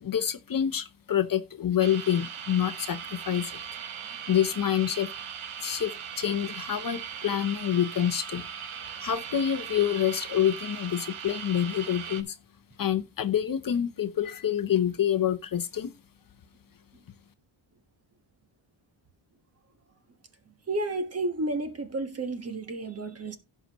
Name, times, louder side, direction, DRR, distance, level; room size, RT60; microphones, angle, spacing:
voice 1, 0.0-3.6 4.3-5.1 5.6-8.4 9.0-12.4 12.8-15.9, left 10 dB, 45° left, 0.8 m, -27 dB
sound 1, 1.8-12.2, right 8 dB, 85° right, 1.4 m, -39 dB
voice 2, 20.7-23.4, right 2 dB, 30° right, 1.4 m, -31 dB
16.5 x 5.9 x 3.0 m
wide cardioid pair, 175°, 49 cm